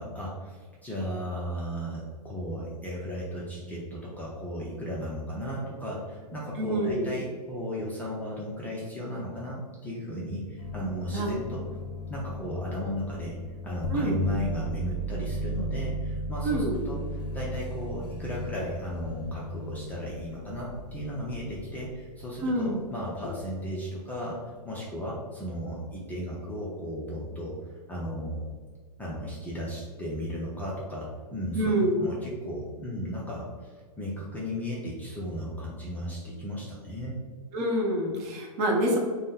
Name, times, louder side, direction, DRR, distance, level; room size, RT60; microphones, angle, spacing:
voice 1, 0.0-11.6 12.1-13.4 13.6-27.6 27.9-28.4 29.0-37.2, equal, 10° left, -5 dB, 0.5 m, -35 dB
voice 2, 6.6-7.0 11.1-11.3 13.9-14.2 16.4-16.8 22.4-22.8 31.5-31.9 37.5-39.0, right 1 dB, 30° right, 0 dB, 0.7 m, -26 dB
sound 1, 10.6-22.4 23.2-23.6, equal, 85° left, 0.5 m, -36 dB
3.9 x 2.1 x 3.6 m, 1.5 s
hypercardioid pair, 115°, 21 cm